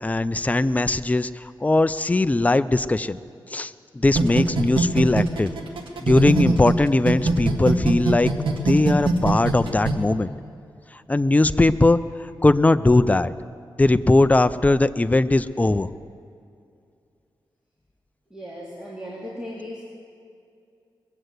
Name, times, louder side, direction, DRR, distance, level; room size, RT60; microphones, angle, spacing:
voice 1, 0.0-3.2 3.5-5.5 6.0-8.3 8.7-10.3 11.1-12.0 12.4-13.3 13.8-15.9, left 2 dB, 15° left, 13 dB, 0.5 m, -19 dB
sound 1, 4.1-6.7 7.1-9.9, right 4 dB, 85° right, 1.7 m, -21 dB
voice 2, 18.3-19.8, equal, 10° right, -6 dB, 2.6 m, -36 dB
21.5 x 7.8 x 8.1 m, 2.4 s
cardioid pair, 85°, 8 cm